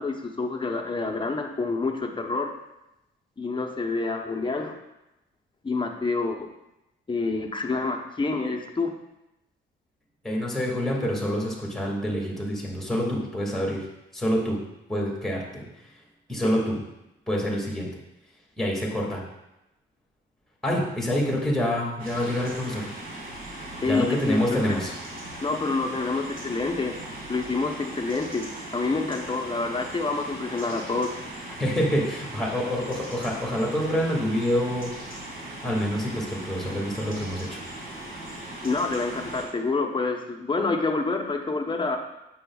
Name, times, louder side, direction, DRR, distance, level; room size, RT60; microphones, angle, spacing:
voice 1, 0.0-2.5 3.4-4.8 5.6-6.5 7.1-8.9 16.4-16.7 23.8-24.8 25.4-26.9 27.3-28.5 28.7-31.2 38.6-42.0, left 3 dB, 25° left, 3 dB, 0.9 m, -27 dB
voice 2, 10.2-13.8 14.1-14.6 14.9-15.6 16.3-16.8 17.3-17.9 18.6-19.2 20.6-22.9 23.8-24.9 31.6-34.9 35.6-37.6, equal, ahead, -3 dB, 2.1 m, -27 dB
sound 1, 22.0-39.4, right 1 dB, 50° right, 2.3 m, -39 dB
8.5 x 7.1 x 2.4 m, 0.92 s
cardioid pair, 90°, 20 cm